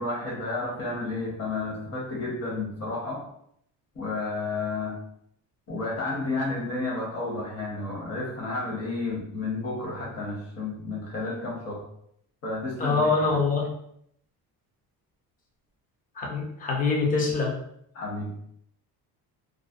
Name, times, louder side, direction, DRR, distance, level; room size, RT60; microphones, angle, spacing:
voice 1, 0.0-3.2 3.9-4.9 5.7-11.8 12.4-13.4 17.9-18.3, left 3 dB, 35° left, -3 dB, 1.1 m, -31 dB
voice 2, 12.8-13.7 16.2-17.5, left 4 dB, 20° left, -1 dB, 0.5 m, -24 dB
2.5 x 2.0 x 2.4 m, 0.70 s
cardioid pair, 115°, 40 cm